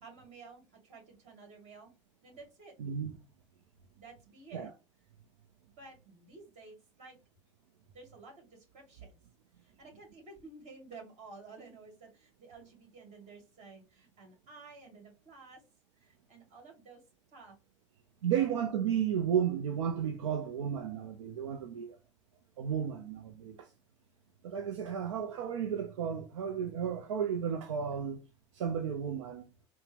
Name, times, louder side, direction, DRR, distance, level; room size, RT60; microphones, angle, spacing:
voice 1, 0.0-1.9 2.2-2.8 4.0-4.7 5.8-7.2 7.9-9.2 9.6-15.6 16.0-17.0 17.3-17.6 18.4-18.5, right 4 dB, 45° right, 2.1 m, -53 dB
voice 2, 2.8-3.2 4.5-4.7 18.2-22.0 22.6-23.7 24.4-28.3 28.5-29.5, right 8 dB, 75° right, 0.4 m, -33 dB
4.2 x 2.1 x 3.4 m
hypercardioid pair, 75°, 16 cm